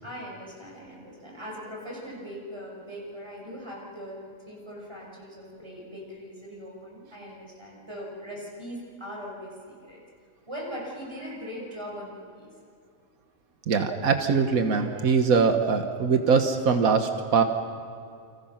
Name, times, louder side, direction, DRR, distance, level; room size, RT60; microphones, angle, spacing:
voice 1, 0.0-10.0 10.5-12.5, equal, 20° right, -3 dB, 6.4 m, -40 dB
voice 2, 13.7-17.4, right 5 dB, 90° right, 6 dB, 1.7 m, -22 dB
29.0 x 25.5 x 5.9 m, 2.4 s
omnidirectional pair, 1.4 m